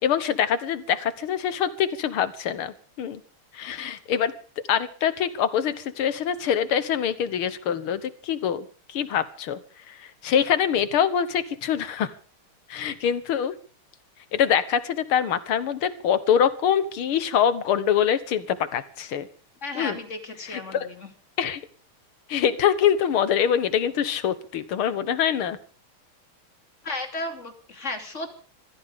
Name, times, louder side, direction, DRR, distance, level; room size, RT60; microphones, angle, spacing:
voice 1, 0.0-3.2 3.5-4.3 4.7-9.6 9.9-12.1 12.7-13.5 14.3-19.3 19.8-20.0 20.5-20.9 21.4-21.6 22.3-25.6, left 8 dB, 85° left, 13 dB, 2.1 m, -24 dB
voice 2, 19.6-21.1 26.8-28.4, left 2 dB, 35° left, 5 dB, 3.1 m, -34 dB
25.5 x 15.0 x 3.7 m, 0.40 s
omnidirectional pair, 2.3 m